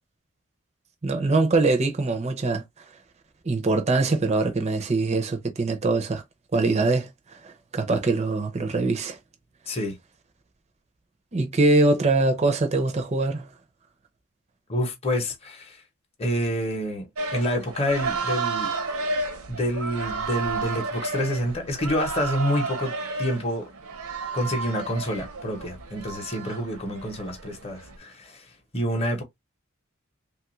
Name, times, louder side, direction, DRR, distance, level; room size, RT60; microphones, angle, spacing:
voice 1, 1.0-2.6 3.4-6.2 6.5-9.2 11.3-13.5, right 3 dB, 30° right, 0.5 m, -23 dB
voice 2, 9.7-10.0 14.7-15.8 16.2-18.7 19.5-23.7 24.3-28.4 28.7-29.2, equal, 25° left, 0.8 m, -28 dB
sound 1, 17.2-28.0, right 3 dB, 70° right, 0.7 m, -32 dB
3.0 x 2.4 x 3.0 m
head